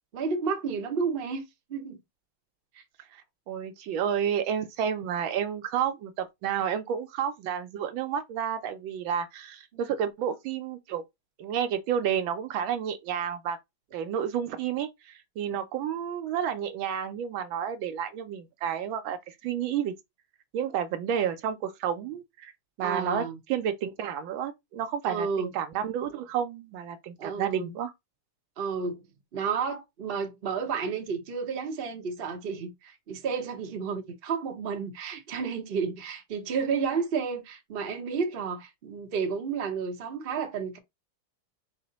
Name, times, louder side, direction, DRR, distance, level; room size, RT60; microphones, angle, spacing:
voice 1, 0.1-1.4 1.7-2.0 9.7-9.8 22.8-23.4 25.0-25.5 27.2-27.7 28.6-29.0 29.3-40.8, right 5 dB, 50° right, 0.7 m, -31 dB
voice 2, 3.5-11.0 11.4-13.6 13.9-19.9 20.5-22.5 22.8-27.9, right 8 dB, 75° right, 1.3 m, -31 dB
4.7 x 2.1 x 3.9 m
omnidirectional pair, 2.3 m